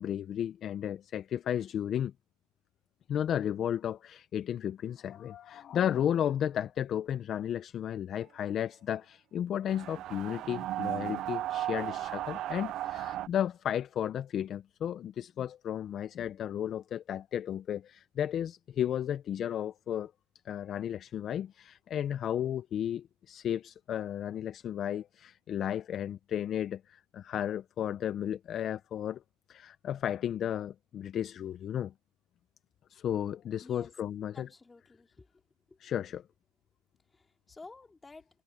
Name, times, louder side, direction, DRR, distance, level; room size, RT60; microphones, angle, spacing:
voice 1, 0.0-2.1 3.1-20.1 20.5-29.2 29.5-31.9 32.9-34.5 35.8-36.2, left 10 dB, 35° left, 0.5 m, -33 dB
sound 1, 9.7-13.3, right 13 dB, 45° right, 0.4 m, -35 dB
voice 2, 34.3-35.3 35.7-35.9 37.1-38.3, left 3 dB, 10° left, 3.2 m, -52 dB
supercardioid pair, 140°, 0 cm